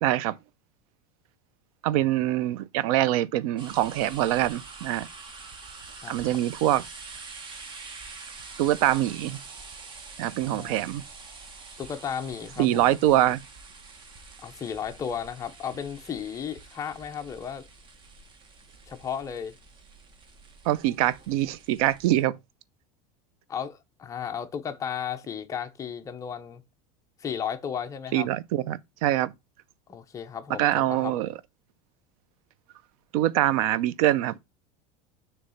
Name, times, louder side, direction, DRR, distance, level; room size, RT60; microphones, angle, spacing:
voice 1, 0.0-0.4 1.8-5.1 6.1-6.8 8.6-9.4 10.2-11.0 12.6-13.4 20.7-22.4 28.1-29.3 30.6-31.3 33.1-34.4, right 13 dB, 70° right, 0.6 m, -24 dB
sound 1, 3.6-22.2, right 4 dB, 25° right, 1.0 m, -46 dB
voice 2, 11.8-13.0 14.4-17.6 18.9-19.5 23.5-26.6 27.2-28.3 29.9-31.1, left 7 dB, 15° left, 0.7 m, -34 dB
6.6 x 3.1 x 5.6 m
supercardioid pair, 160°, 19 cm